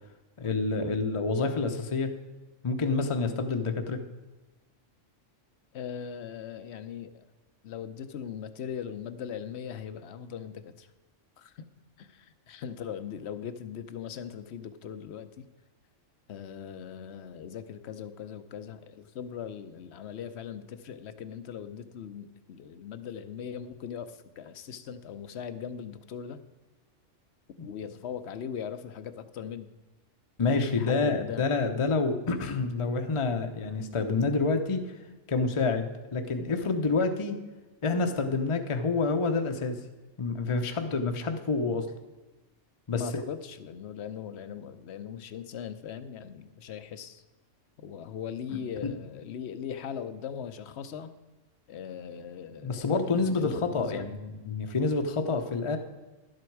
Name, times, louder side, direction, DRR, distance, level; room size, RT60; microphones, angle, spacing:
voice 1, 0.4-2.1 2.6-4.0 30.4-34.8 35.3-37.4 37.8-39.8 40.2-41.9 42.9-43.2 48.8-48.9 52.6-55.8, left 3 dB, 30° left, 6 dB, 0.8 m, -28 dB
voice 2, 5.7-7.3 7.6-10.9 11.4-11.6 12.0-15.4 16.3-26.4 27.6-29.7 30.7-31.5 43.0-47.2 47.8-51.1 51.7-54.1, left 8 dB, 65° left, 11 dB, 0.9 m, -40 dB
11.5 x 7.7 x 4.7 m, 1.2 s
omnidirectional pair, 1.3 m